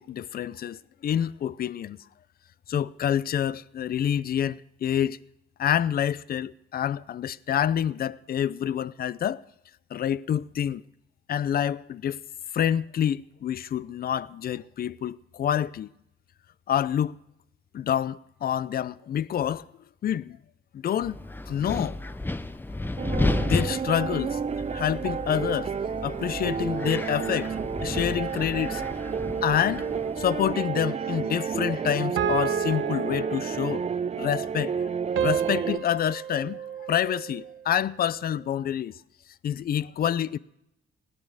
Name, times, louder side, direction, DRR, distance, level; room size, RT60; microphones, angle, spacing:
voice 1, 0.0-2.0 2.7-5.2 5.6-9.4 9.9-10.8 11.3-12.2 12.5-15.9 16.7-17.2 17.7-19.7 20.0-20.4 20.7-21.2 21.5-22.0 23.4-24.4 24.7-27.6 27.8-28.8 29.4-29.9 30.2-33.8 34.2-39.0 39.4-40.4, left 10 dB, 50° left, 0.5 m, -27 dB
Wind, 21.0-30.5, left 2 dB, 10° left, 0.7 m, -33 dB
sound 1, 23.0-35.8, right 6 dB, 35° right, 0.5 m, -31 dB
sound 2, 30.2-30.9 32.2-34.0 35.2-37.6, right 8 dB, 75° right, 1.4 m, -31 dB
17.5 x 11.0 x 6.5 m
cardioid pair, 90°, 20 cm